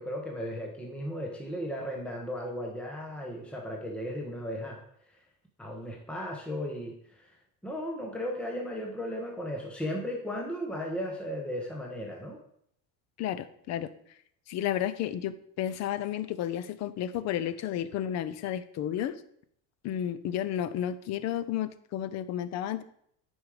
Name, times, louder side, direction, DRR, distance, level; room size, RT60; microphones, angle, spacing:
voice 1, 0.0-4.8 5.6-7.3 7.6-12.4, equal, 5° left, 0 dB, 1.1 m, -35 dB
voice 2, 13.2-13.9 14.5-19.1 19.8-22.8, left 10 dB, 40° left, 14 dB, 0.6 m, -32 dB
9.5 x 5.4 x 4.9 m, 0.67 s
cardioid pair, 145°, 41 cm